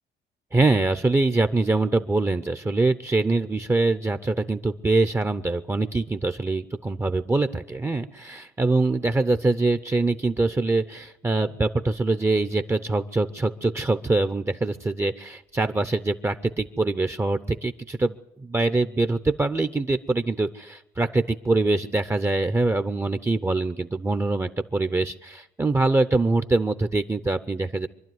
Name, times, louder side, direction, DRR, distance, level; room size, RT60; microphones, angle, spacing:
voice 1, 0.5-18.2 18.4-27.9, right 3 dB, 15° right, 11 dB, 0.7 m, -24 dB
25.0 x 11.5 x 9.5 m, 0.87 s
cardioid pair, 110°, 17 cm